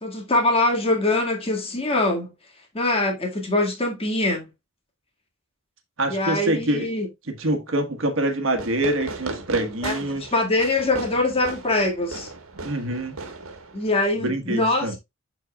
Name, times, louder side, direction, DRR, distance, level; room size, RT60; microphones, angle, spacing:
voice 1, 0.0-2.3 2.7-4.5 6.1-7.1 9.8-12.3 13.7-15.0, left 2 dB, 30° left, 1.8 m, -23 dB
voice 2, 6.0-6.9 7.3-10.2 12.6-13.2 14.2-15.0, right 1 dB, 70° right, 1.4 m, -25 dB
Fireworks, 8.5-14.1, right 3 dB, 90° right, 1.4 m, -36 dB
12.0 x 4.1 x 2.3 m
head